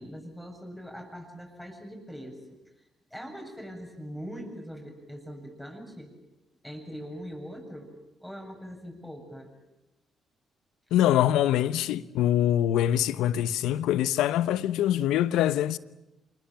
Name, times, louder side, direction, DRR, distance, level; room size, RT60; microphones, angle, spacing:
voice 1, 0.0-2.8 3.1-6.1 6.6-7.9 8.2-9.5, equal, ahead, 7.6 m, -42 dB
voice 2, 10.9-15.8, left 12 dB, 85° left, 0.9 m, -24 dB
27.0 x 20.0 x 8.9 m
supercardioid pair, 70°, 0 cm